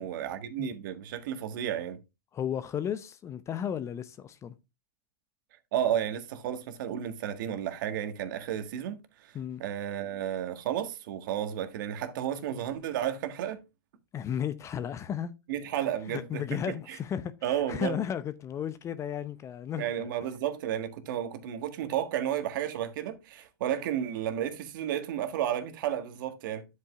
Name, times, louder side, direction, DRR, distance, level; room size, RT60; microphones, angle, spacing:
voice 1, 0.0-2.0 5.7-13.6 15.5-17.0 17.4-18.0 19.8-26.7, right 10 dB, 60° right, 1.6 m, -32 dB
voice 2, 2.3-4.5 9.3-9.6 14.1-15.3 16.0-20.1, left 9 dB, 25° left, 0.7 m, -34 dB
10.0 x 8.1 x 2.4 m
hypercardioid pair, 110°, 12 cm